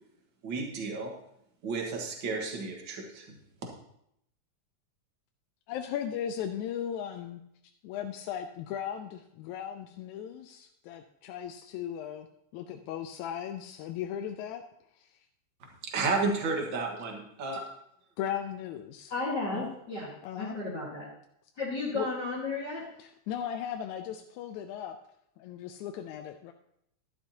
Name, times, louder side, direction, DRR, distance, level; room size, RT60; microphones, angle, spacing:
voice 1, 0.4-1.1 1.6-3.7 15.8-17.6 19.5-19.6, right 3 dB, 50° right, 1 dB, 2.0 m, -32 dB
voice 2, 5.7-7.4 7.8-12.3 12.5-14.6 15.0-15.1 18.2-19.1 20.2-20.6 21.9-22.1 23.0-25.0 25.4-26.5, left 9 dB, 90° left, 5 dB, 2.0 m, -37 dB
voice 3, 19.1-20.1 20.4-21.1 21.6-22.8, left 3 dB, 40° left, -7 dB, 2.1 m, -33 dB
12.0 x 11.5 x 2.9 m, 0.75 s
omnidirectional pair, 3.3 m